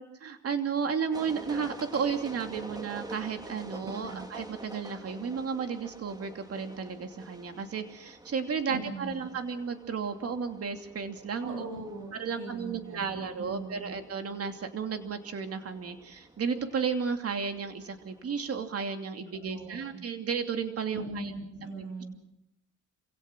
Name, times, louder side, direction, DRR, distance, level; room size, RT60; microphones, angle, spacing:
voice 1, 0.0-11.7 12.1-21.3, right 6 dB, 50° right, 6 dB, 2.7 m, -33 dB
sound 1, 1.1-18.7, right 1 dB, 15° right, 2.0 m, -48 dB
voice 2, 3.8-4.2 8.7-9.3 11.4-14.0 19.3-19.9 20.9-22.2, right 2 dB, 85° right, 4 dB, 7.9 m, -41 dB
27.0 x 17.0 x 6.2 m, 0.78 s
cardioid pair, 90°, 30 cm